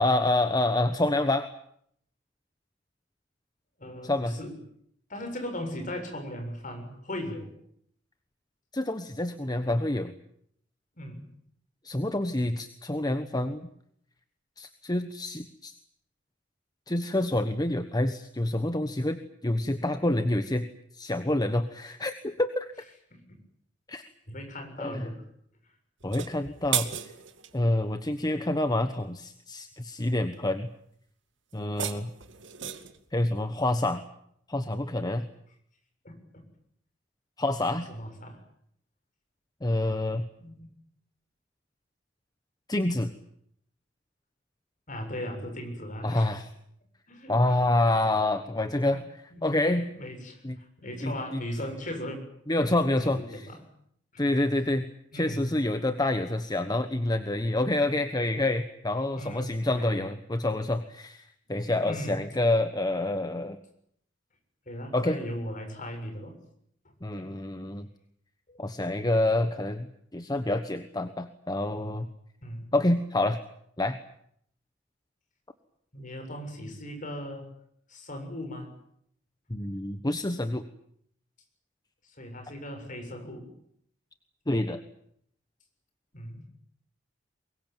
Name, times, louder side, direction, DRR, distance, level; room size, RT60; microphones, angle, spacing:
voice 1, 0.0-1.5 4.0-4.4 8.7-10.1 11.8-13.7 14.6-15.7 16.9-20.7 20.9-22.7 23.9-24.0 24.8-25.1 26.0-27.1 27.5-30.7 31.5-32.1 33.1-34.0 34.5-35.3 37.4-37.9 39.6-40.3 42.7-43.1 46.0-46.5 47.3-49.9 50.4-50.6 51.0-51.4 52.5-53.5 54.2-54.9 55.1-63.6 64.9-65.2 67.0-67.9 68.6-69.9 70.1-72.1 72.7-73.4 73.8-74.0 79.5-80.7 84.5-84.8, left 1 dB, 20° left, 9 dB, 1.2 m, -27 dB
voice 2, 3.8-4.6 5.1-7.5 11.0-11.3 23.1-23.2 24.3-25.2 36.0-36.2 37.9-38.4 40.4-40.7 44.9-46.3 47.1-47.6 47.9-48.0 49.3-49.5 49.7-52.2 53.0-53.6 54.1-54.2 55.1-55.5 59.1-60.1 61.8-62.2 64.7-66.4 67.2-67.3 68.5-68.6 72.4-72.7 75.9-77.5 77.9-78.7 82.0-83.5 86.1-86.5, equal, 45° left, 5 dB, 7.2 m, -38 dB
sound 1, 26.0-27.6 31.5-33.0, right 10 dB, 80° right, 2.3 m, -34 dB
24.0 x 22.0 x 9.1 m, 0.70 s
head